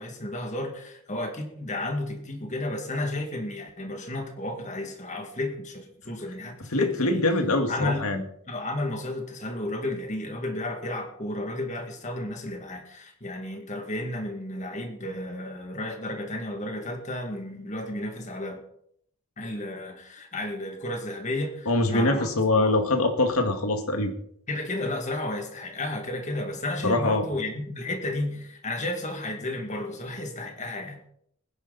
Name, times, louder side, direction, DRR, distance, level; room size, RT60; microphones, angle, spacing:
voice 1, 0.0-7.3 7.7-8.1 8.5-18.6 19.4-22.3 22.5-22.7 24.5-31.0, left 1 dB, 35° left, 4 dB, 2.2 m, -32 dB
voice 2, 6.7-8.2 21.7-24.1 26.8-27.2, left 2 dB, 80° left, 6 dB, 2.0 m, -23 dB
20.0 x 10.5 x 4.2 m, 0.68 s
head